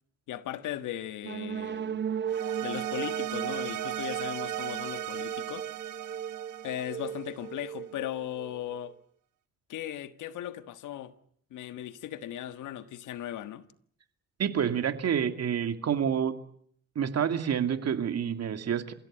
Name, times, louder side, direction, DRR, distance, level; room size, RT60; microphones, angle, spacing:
voice 1, 0.3-2.0 2.6-5.7 6.6-8.9 9.7-11.1 11.5-13.7, left 12 dB, 80° left, 1.6 m, -37 dB
sound 1, 1.2-8.9, right 8 dB, 35° right, 0.9 m, -36 dB
sound 2, 2.3-7.6, right 13 dB, 75° right, 1.8 m, -37 dB
voice 2, 14.4-16.3 17.0-18.9, right 8 dB, 55° right, 2.5 m, -28 dB
29.5 x 16.5 x 8.8 m
cardioid pair, 90°, 30 cm